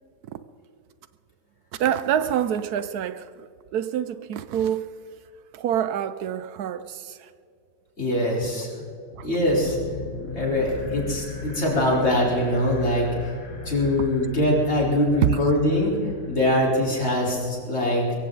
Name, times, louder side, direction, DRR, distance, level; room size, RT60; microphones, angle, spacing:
voice 1, 1.8-5.1 5.5-7.3 9.1-9.3 11.7-11.9 14.0-14.1 15.2-15.4, right 10 dB, 75° right, 1.1 m, -26 dB
voice 2, 8.0-8.7 9.2-9.8 10.3-13.4 13.6-18.0, left 1 dB, 40° left, 4.5 m, -23 dB
sound 1, 9.5-17.6, left 3 dB, 60° left, 2.6 m, -38 dB
23.0 x 15.5 x 3.9 m
omnidirectional pair, 1.7 m